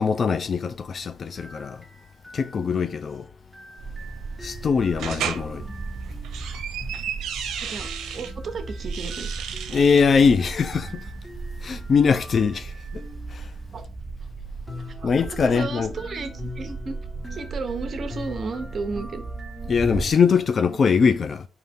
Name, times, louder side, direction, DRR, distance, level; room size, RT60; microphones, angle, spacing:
voice 1, 0.0-1.8 2.3-3.3 4.4-5.6 9.7-11.0 11.6-13.0 13.3-13.5 15.0-15.9 19.7-21.5, left 5 dB, 45° left, 0.3 m, -22 dB
sound 1, 1.3-6.5 7.8-13.6 14.7-20.8, left 2 dB, 5° right, 1.2 m, -44 dB
sound 2, 3.8-20.1, right 3 dB, 30° right, 0.4 m, -36 dB
sound 3, 5.0-5.4 6.1-8.3 8.8-10.1, right 8 dB, 80° right, 0.6 m, -33 dB
voice 2, 8.1-9.3 13.7-13.8 15.0-17.0 17.3-19.2, right 4 dB, 45° right, 0.8 m, -33 dB
4.0 x 2.9 x 3.5 m
cardioid pair, 90°, 0 cm